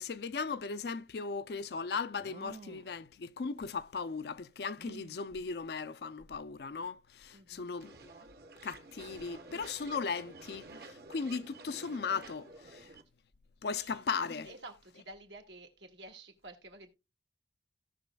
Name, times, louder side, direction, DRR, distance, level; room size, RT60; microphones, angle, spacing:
voice 1, 0.0-8.1 8.6-12.9 13.6-14.5, left 5 dB, 60° left, 0.4 m, -37 dB
sound 1, 0.6-0.7 2.1-3.0 4.8-5.2 6.2-6.3 6.8-6.9 9.0-9.4 11.3-11.4 11.7-12.1, right 4 dB, 40° right, 0.3 m, -52 dB
voice 2, 7.3-7.7 12.7-12.9 13.8-14.0 14.4-16.9, right 2 dB, 80° right, 1.9 m, -51 dB
sound 2, 7.8-13.0, right 3 dB, 55° right, 1.1 m, -51 dB
17.0 x 6.1 x 2.2 m
head